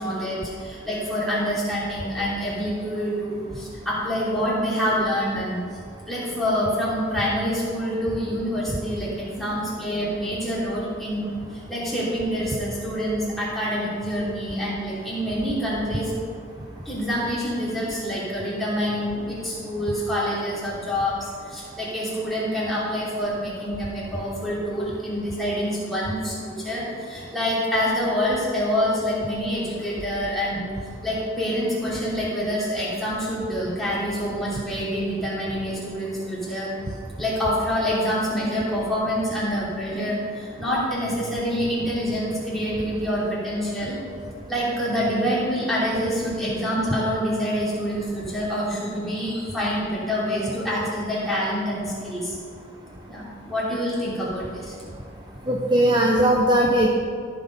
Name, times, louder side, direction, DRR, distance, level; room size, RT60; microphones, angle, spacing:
voice 1, 0.0-5.6 6.1-16.1 16.8-30.7 31.0-36.7 37.2-44.0 44.5-52.4 53.1-54.7 55.4-55.7, equal, ahead, -8 dB, 2.9 m, -26 dB
voice 2, 55.5-56.9, right 1 dB, 25° right, -1 dB, 0.7 m, -19 dB
14.0 x 6.0 x 5.3 m, 2.3 s
head